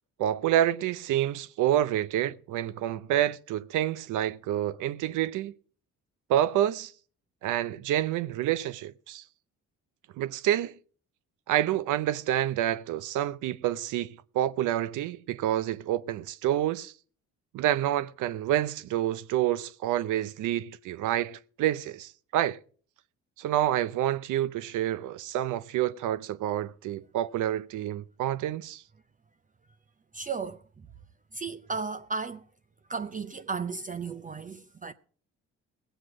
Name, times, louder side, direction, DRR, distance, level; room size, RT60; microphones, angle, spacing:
voice 1, 0.2-5.5 6.3-6.9 7.4-9.2 10.2-10.7 11.5-16.9 17.5-22.6 23.4-28.8, right 12 dB, 80° right, 0.6 m, -28 dB
voice 2, 30.1-30.9 31.3-32.4 32.9-34.9, right 5 dB, 25° right, 0.5 m, -35 dB
18.5 x 8.1 x 4.9 m
cardioid pair, 90°, 30 cm